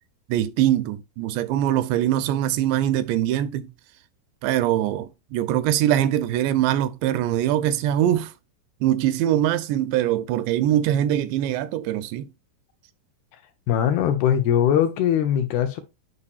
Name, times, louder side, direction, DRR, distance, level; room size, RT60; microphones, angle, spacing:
voice 1, 0.3-3.7 4.4-8.3 8.8-12.2, right 12 dB, 80° right, 2.7 m, -22 dB
voice 2, 13.7-15.8, left 9 dB, 75° left, 2.5 m, -21 dB
9.8 x 5.6 x 2.4 m
omnidirectional pair, 5.1 m